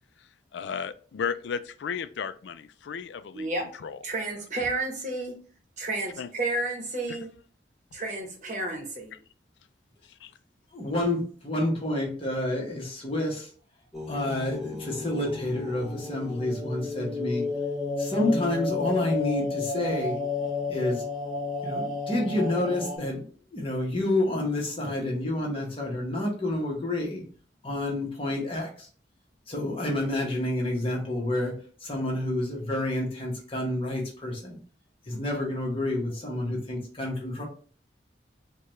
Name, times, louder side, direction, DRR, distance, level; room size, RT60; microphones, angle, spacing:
voice 1, 0.2-3.5 3.8-4.0 6.2-6.3 7.1-7.2 10.1-10.3, left 6 dB, 80° left, 12 dB, 0.3 m, -34 dB
voice 2, 3.3-5.3 5.8-7.3 7.9-9.2, right 2 dB, 45° right, 2 dB, 0.9 m, -31 dB
voice 3, 10.7-13.5 14.1-17.5 18.0-20.2 20.7-21.0 21.6-23.2 23.5-27.2 27.6-28.9 29.5-31.5 31.8-34.6 35.1-37.4, left 1 dB, 30° left, -1 dB, 1.1 m, -29 dB
sound 1, 13.9-23.0, left 3 dB, ahead, 0.8 m, -32 dB
4.5 x 2.3 x 3.1 m, 0.42 s
head